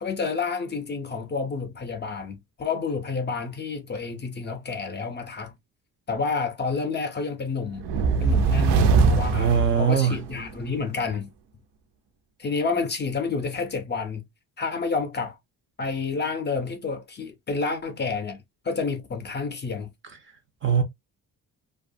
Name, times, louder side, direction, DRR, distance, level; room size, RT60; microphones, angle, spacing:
voice 1, 0.0-5.5 6.1-7.8 8.2-11.3 12.4-14.2 14.6-15.4 15.8-19.9, left 4 dB, 30° left, 0.4 m, -29 dB
sound 1, 7.8-10.5, right 4 dB, 85° right, 0.6 m, -21 dB
voice 2, 9.3-10.2 20.6-20.8, right 7 dB, 35° right, 0.4 m, -21 dB
2.8 x 2.3 x 2.5 m
cardioid pair, 170°, 39 cm